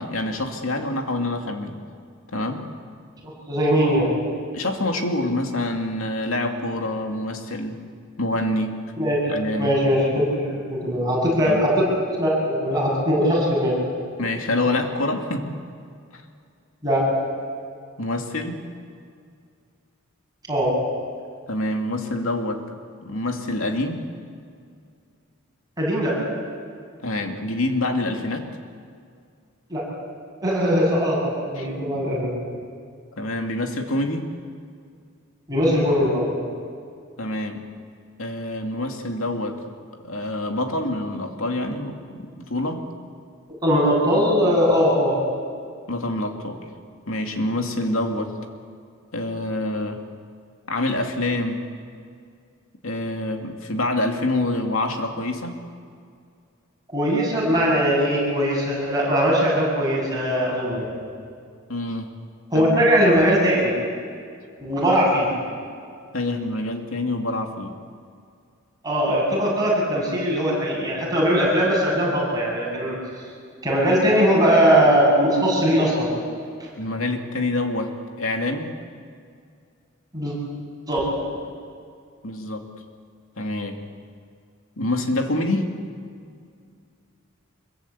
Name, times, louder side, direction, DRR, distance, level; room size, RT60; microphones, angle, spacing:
voice 1, 0.0-1.8 2.3-2.6 4.5-7.8 8.2-8.7 9.3-9.7 11.4-11.6 14.2-15.5 16.1-16.2 18.0-18.6 21.5-22.6 23.0-24.0 27.0-28.5 31.6-31.7 33.2-34.3 37.2-37.7 38.2-39.6 40.0-42.8 45.9-46.6 47.1-48.4 49.1-50.0 50.7-51.6 52.8-55.6 61.7-62.1 62.5-62.9 66.1-67.8 74.1-74.2 76.8-78.7 82.2-82.7 83.4-83.8 84.8-85.8, left 1 dB, 75° left, 4 dB, 2.5 m, -26 dB
voice 2, 3.5-4.1 9.0-9.2 9.6-11.9 12.2-13.8 16.8-17.1 20.5-20.7 25.8-26.1 29.7-29.8 30.4-32.3 35.5-36.3 43.6-45.2 56.9-61.0 62.5-63.8 64.6-65.3 68.8-73.0 73.6-76.1 80.1-80.3 80.9-81.0, equal, 20° right, -4 dB, 7.9 m, -20 dB
25.5 x 22.5 x 8.6 m, 2.3 s
head